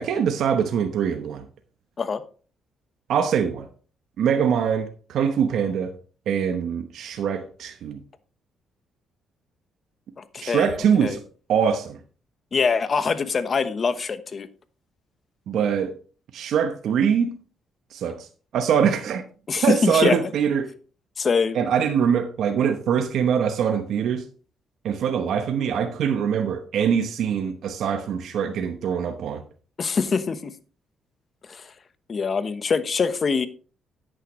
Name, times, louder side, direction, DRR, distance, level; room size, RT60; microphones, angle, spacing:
voice 1, 0.0-1.4 3.1-3.7 4.2-5.9 6.3-8.0 10.4-11.2 11.5-12.0 15.5-15.9 16.3-17.3 17.9-18.3 18.5-19.2 19.6-20.7 21.5-24.2 24.8-29.4, right 7 dB, 75° right, 0.9 m, -23 dB
voice 2, 10.2-11.2 12.5-14.5 19.5-20.2 21.2-21.6 29.8-30.5 31.5-31.7 32.1-33.5, left 5 dB, 40° left, 1.0 m, -24 dB
11.0 x 8.9 x 3.1 m
cardioid pair, 90°, 0 cm